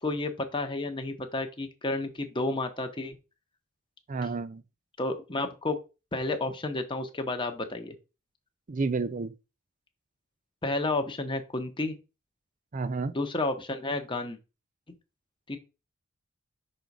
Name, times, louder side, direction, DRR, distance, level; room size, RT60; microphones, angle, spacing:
voice 1, 0.0-3.2 5.0-5.8 6.1-7.9 10.6-12.0 13.1-14.4 15.5-15.6, left 2 dB, 25° left, 0.9 m, -31 dB
voice 2, 4.1-4.6 8.7-9.3 12.7-13.1, right 4 dB, 35° right, 0.5 m, -30 dB
5.3 x 3.8 x 5.9 m
head